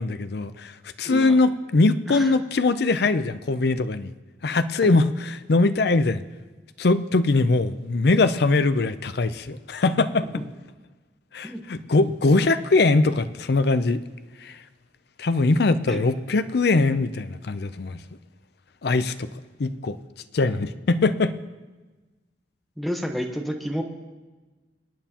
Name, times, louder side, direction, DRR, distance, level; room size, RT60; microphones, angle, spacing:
voice 1, 0.0-4.1 4.4-6.2 6.8-10.3 11.3-14.0 14.4-14.6 15.2-18.0 18.8-19.3 19.6-20.0 20.3-21.4, left 3 dB, 65° left, 12 dB, 0.5 m, -22 dB
voice 2, 1.0-1.4 2.1-2.3 4.8-5.0 11.4-11.6 15.9-16.1 22.8-23.8, equal, ahead, 3 dB, 1.0 m, -30 dB
24.5 x 9.0 x 2.9 m, 1.2 s
head